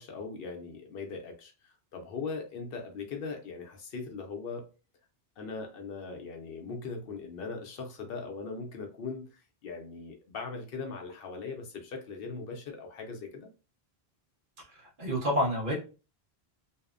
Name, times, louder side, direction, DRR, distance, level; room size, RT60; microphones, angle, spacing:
voice 1, 0.0-4.7 5.4-13.5, left 4 dB, 70° left, 3 dB, 0.7 m, -40 dB
voice 2, 14.7-15.7, equal, 55° right, -2 dB, 1.1 m, -29 dB
2.7 x 2.0 x 2.3 m, 0.34 s
omnidirectional pair, 1.1 m